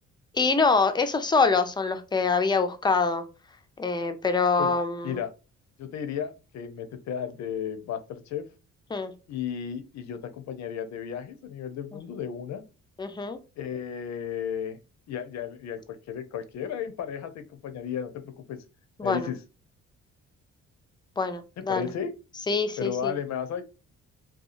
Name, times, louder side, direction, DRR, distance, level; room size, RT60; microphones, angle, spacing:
voice 1, 0.3-3.2 3.8-5.1 8.9-9.1 13.0-13.4 19.0-19.3 21.2-21.9 22.5-23.1, left 4 dB, 15° left, 8 dB, 0.4 m, -25 dB
voice 2, 5.8-8.5 9.3-12.6 13.6-14.8 15.1-18.1 18.5-18.6 19.0-19.4 21.7-22.1 22.8-23.6, left 8 dB, 65° left, 9 dB, 0.6 m, -34 dB
2.7 x 2.3 x 2.5 m, 0.31 s
cardioid pair, 90°, 30 cm